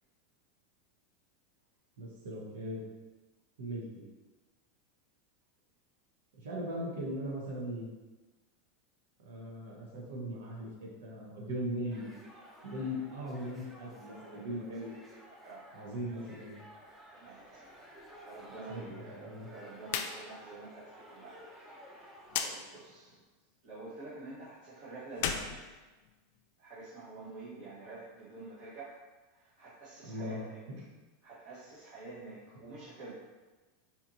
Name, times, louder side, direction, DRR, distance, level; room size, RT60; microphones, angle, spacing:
voice 1, 2.0-2.8 3.6-4.0 6.4-7.9 9.2-12.1 12.6-15.0 15.7-16.6 18.7-19.5 30.0-30.4 30.7-30.9, equal, 80° right, -3 dB, 1.1 m, -39 dB
sound 1, 11.9-22.4, equal, 10° right, 0.7 m, -54 dB
voice 2, 17.1-17.7 18.2-23.1 23.6-25.8 26.6-28.9 29.3-30.6 31.2-33.1, right 3 dB, 60° right, -10 dB, 1.3 m, -48 dB
sound 2, 19.8-20.1 20.5-20.6 22.3-22.5 25.1-26.4, left 8 dB, 65° left, 0.3 m, -35 dB
4.1 x 3.0 x 2.7 m, 1.2 s
supercardioid pair, 120°, 0 cm